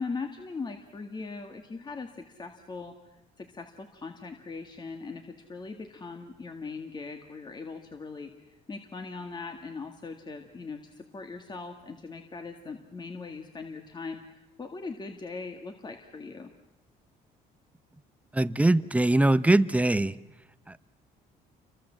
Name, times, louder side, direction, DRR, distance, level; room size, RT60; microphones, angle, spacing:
voice 1, 0.0-16.5, left 4 dB, 25° left, 5 dB, 2.0 m, -40 dB
voice 2, 18.3-20.1, right 2 dB, 10° right, 14 dB, 0.9 m, -22 dB
30.0 x 24.5 x 7.6 m, 1.0 s
cardioid pair, 110°, 17 cm